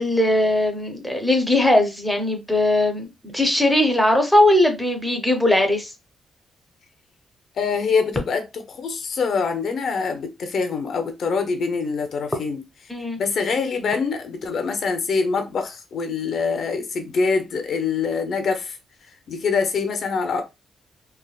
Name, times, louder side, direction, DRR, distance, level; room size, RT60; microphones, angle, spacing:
voice 1, 0.0-5.9 12.9-13.2, left 1 dB, ahead, 0.5 m, -19 dB
voice 2, 7.6-12.6 13.2-18.8 19.3-20.4, left 5 dB, 55° left, 0.5 m, -24 dB
3.2 x 2.1 x 2.2 m
wide cardioid pair, 165°, 0 cm